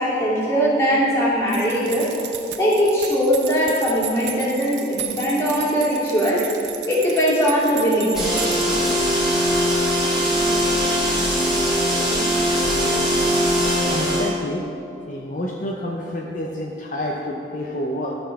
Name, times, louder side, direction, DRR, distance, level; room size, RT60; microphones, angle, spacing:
voice 1, 0.0-2.1 2.6-6.5 6.9-8.3 13.1-13.3, equal, 15° left, -8 dB, 2.4 m, -20 dB
sound 1, 1.5-9.2, right 10 dB, 80° right, 0.7 m, -34 dB
sound 2, 8.1-14.3, equal, ahead, 2.2 m, -20 dB
voice 2, 13.9-14.6 15.1-18.2, left 1 dB, 45° left, -1 dB, 0.7 m, -28 dB
12.5 x 4.4 x 5.7 m, 2.7 s
head